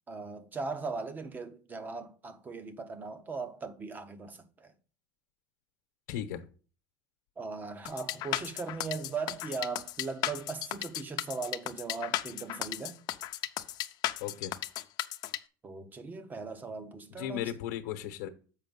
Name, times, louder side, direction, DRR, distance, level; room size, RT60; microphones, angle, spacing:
voice 1, 0.1-4.7 7.4-13.0 15.6-17.4, right 4 dB, 20° right, 0.9 m, -39 dB
voice 2, 6.1-6.4 14.2-14.5 17.1-18.3, left 11 dB, 80° left, 1.0 m, -36 dB
sound 1, 7.9-15.4, left 14 dB, 45° left, 0.6 m, -35 dB
7.5 x 5.1 x 5.3 m
supercardioid pair, 145°, 10 cm